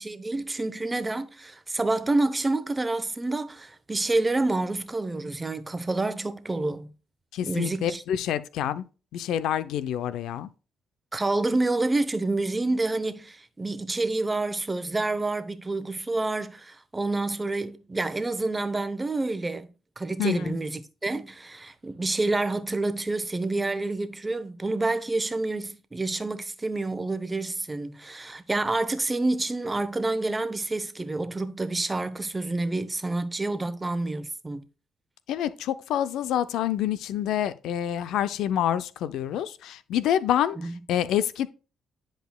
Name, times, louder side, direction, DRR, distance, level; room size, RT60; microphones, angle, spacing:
voice 1, 0.0-6.9 7.4-8.0 11.1-19.7 20.0-34.6 40.6-40.8, right 2 dB, 20° right, 0.8 m, -28 dB
voice 2, 7.3-8.8 9.1-10.5 20.2-20.5 35.3-40.6 40.9-41.5, left 10 dB, 85° left, 0.5 m, -27 dB
10.0 x 5.0 x 2.3 m
cardioid pair, 90°, 0 cm